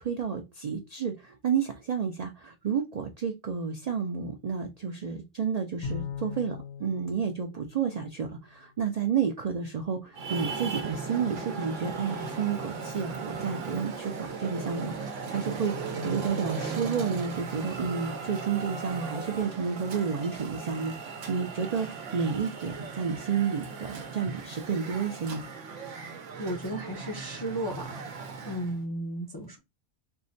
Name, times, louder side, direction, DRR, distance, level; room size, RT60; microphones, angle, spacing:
voice 1, 0.0-25.4, right 6 dB, 55° right, 4 dB, 0.4 m, -31 dB
Bowed string instrument, 5.8-8.5, left 6 dB, 80° left, 1.1 m, -39 dB
Traffic noise roadway noise, 10.1-28.8, right 5 dB, 85° right, 1.0 m, -37 dB
voice 2, 26.4-27.9 28.4-29.6, right 1 dB, 30° left, 1 dB, 0.4 m, -34 dB
4.6 x 2.1 x 2.6 m, 0.23 s
omnidirectional pair, 1.2 m